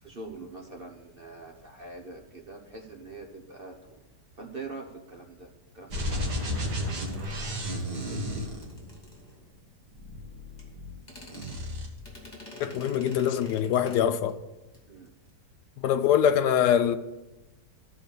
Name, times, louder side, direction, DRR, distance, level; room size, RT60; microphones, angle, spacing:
voice 1, 0.0-4.0 4.4-8.6 9.3-9.4 14.9-15.1, right 3 dB, 40° right, 0.9 m, -45 dB
sound 1, 5.9-9.2 9.9-11.0 11.3-11.9, equal, 70° right, 2.2 m, -33 dB
sound 2, 7.0-9.7 10.6-10.7 11.0-14.4 14.7-14.8 15.1-15.3, left 2 dB, 25° left, 2.8 m, -49 dB
voice 2, 12.6-14.4 15.8-17.0, left 9 dB, 75° left, 1.1 m, -23 dB
13.5 x 5.0 x 7.0 m
omnidirectional pair, 1.9 m